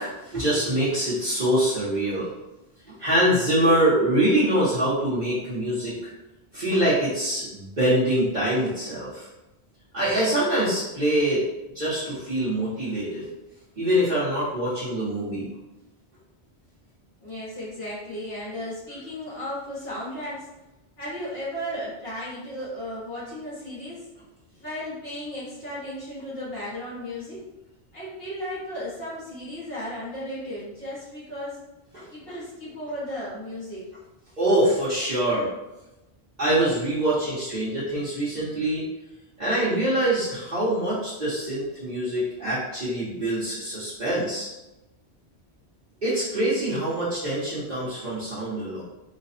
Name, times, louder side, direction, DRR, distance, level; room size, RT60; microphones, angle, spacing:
voice 1, 0.0-2.3 3.0-5.9 6.5-9.3 9.9-11.4 11.7-13.2 13.8-15.5 31.9-32.0 34.4-35.5 36.4-38.8 39.4-44.5 46.0-48.8, right 1 dB, 45° right, -11 dB, 1.2 m, -24 dB
voice 2, 17.2-20.5 21.0-24.0 24.6-27.4 27.9-31.6 32.1-33.8, equal, 65° left, -9 dB, 1.5 m, -35 dB
3.3 x 2.3 x 4.1 m, 0.98 s
omnidirectional pair, 1.1 m